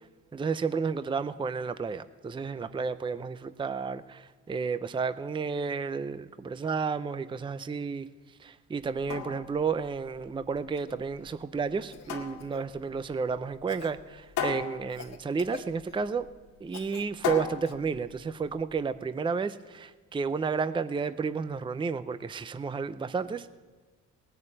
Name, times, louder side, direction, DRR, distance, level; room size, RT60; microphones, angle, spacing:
voice 1, 0.3-8.1 8.4-16.2 16.6-23.5, right 5 dB, 15° right, 13 dB, 0.5 m, -32 dB
sound 1, 8.8-18.8, left 7 dB, 80° left, 2.0 m, -38 dB
Cough, 10.7-11.0 11.9-12.6 13.7-14.0 14.9-16.1 16.7-17.1 17.6-17.7 19.6-19.7, left 8 dB, 60° left, 1.1 m, -46 dB
18.5 x 6.9 x 8.7 m, 1.3 s
cardioid pair, 90°, 30 cm